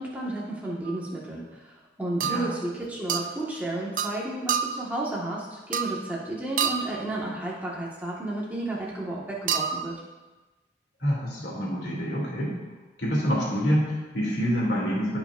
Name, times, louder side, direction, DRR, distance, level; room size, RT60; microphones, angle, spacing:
voice 1, 0.0-1.7 2.0-9.9, right 1 dB, 10° right, -5 dB, 1.6 m, -32 dB
sound 1, 0.9-1.0 2.2-2.6 3.1-3.3 4.0-4.2 4.5-4.9 5.7-6.1 6.6-7.0 9.5-9.9, right 7 dB, 45° right, 0.4 m, -28 dB
voice 2, 11.0-12.5 13.0-15.2, equal, 75° left, -4 dB, 2.6 m, -26 dB
15.0 x 5.8 x 2.6 m, 1.1 s
head